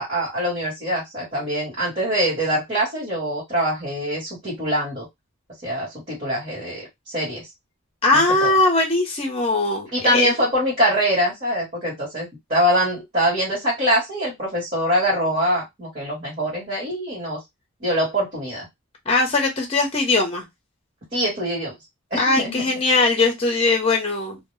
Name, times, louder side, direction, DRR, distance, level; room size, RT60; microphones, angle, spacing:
voice 1, 0.0-5.1 5.6-7.5 8.1-8.5 9.9-17.4 17.8-18.7 21.1-21.8 22.1-22.6, equal, 35° right, -5 dB, 1.1 m, -24 dB
voice 2, 8.0-10.3 19.1-20.4 22.2-24.4, left 3 dB, 25° left, 2 dB, 0.7 m, -20 dB
2.1 x 2.0 x 3.0 m, 0.17 s
head